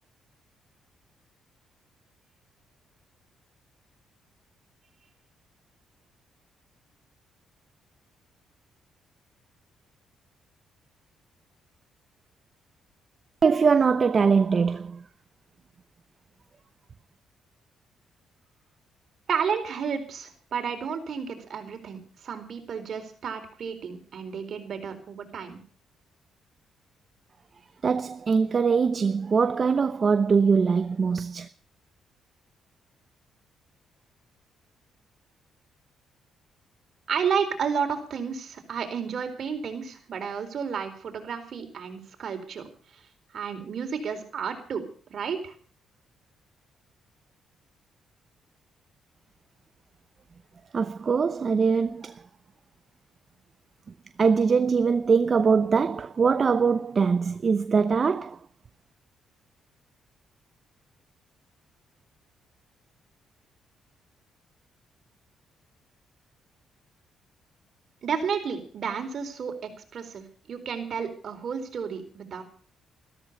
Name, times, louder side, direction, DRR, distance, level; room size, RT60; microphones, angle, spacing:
voice 1, 13.4-15.0 27.8-31.5 50.7-52.1 54.2-58.4, right 5 dB, 40° right, 0.7 m, -22 dB
voice 2, 19.3-25.6 37.1-42.6 43.3-44.8 45.1-45.5 68.0-72.4, right 6 dB, 55° right, 4.2 m, -31 dB
14.0 x 13.5 x 6.8 m
cardioid pair, 90°, 0 cm